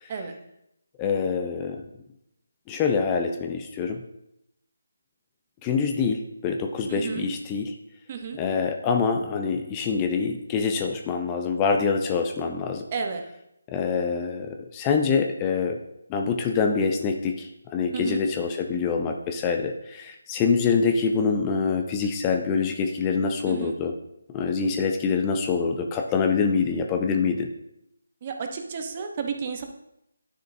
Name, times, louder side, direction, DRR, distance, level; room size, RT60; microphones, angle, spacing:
voice 1, 1.0-1.8 2.7-4.0 5.6-7.7 8.4-12.8 13.7-15.8 16.1-23.9 24.3-27.5, left 5 dB, 20° left, 4 dB, 0.5 m, -25 dB
voice 2, 6.9-7.3 8.1-8.4 12.9-13.2 17.9-18.2 23.5-23.7 28.2-29.6, right 6 dB, 35° right, 5 dB, 0.9 m, -32 dB
10.0 x 6.4 x 2.7 m, 0.82 s
figure-of-eight pair, 160°, 0 cm